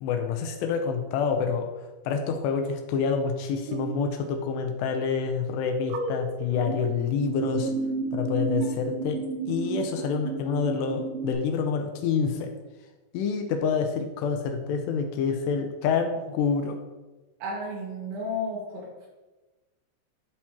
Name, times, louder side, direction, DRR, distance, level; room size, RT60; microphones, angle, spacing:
voice 1, 0.0-1.7 2.1-7.7 8.1-9.2 9.5-12.5 13.1-16.8, left 6 dB, 80° left, 5 dB, 2.6 m, -27 dB
sound 1, 3.5-4.1 5.8-6.8 7.2-11.3, right 5 dB, 90° right, 3.0 m, -32 dB
voice 2, 17.4-19.1, left 1 dB, 65° right, -2 dB, 3.5 m, -33 dB
12.0 x 4.3 x 2.8 m, 1.1 s
omnidirectional pair, 5.2 m